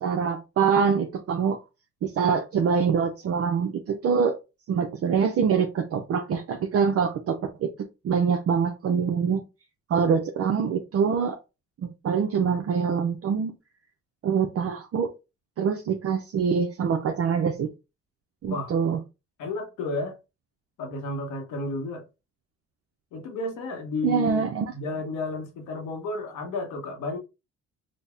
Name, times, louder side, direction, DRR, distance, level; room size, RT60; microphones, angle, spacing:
voice 1, 0.0-1.6 2.0-4.4 4.7-7.7 8.0-9.4 9.9-11.4 11.8-13.5 14.2-15.1 15.6-17.7 18.4-19.0 24.0-24.7, right 6 dB, 50° right, 0.5 m, -24 dB
voice 2, 19.4-20.2 20.8-22.1 23.1-24.5 24.7-27.2, left 3 dB, 90° left, 0.9 m, -32 dB
4.0 x 2.0 x 3.3 m
cardioid pair, 90°, 30 cm